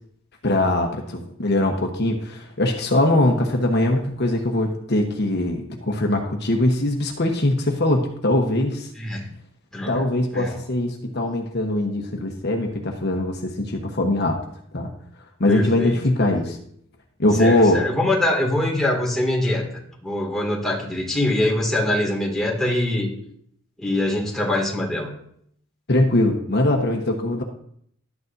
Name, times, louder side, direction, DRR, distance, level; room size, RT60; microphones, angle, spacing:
voice 1, 0.4-8.9 9.9-14.4 14.7-14.9 15.4-16.6 17.2-17.8 25.9-27.4, left 1 dB, 55° left, 2 dB, 1.1 m, -21 dB
voice 2, 9.0-9.3 9.7-10.0 10.3-10.6 15.5-16.3 17.4-19.6 20.0-23.1 23.8-25.1, left 1 dB, ahead, -3 dB, 2.2 m, -23 dB
12.0 x 9.5 x 2.7 m, 0.67 s
head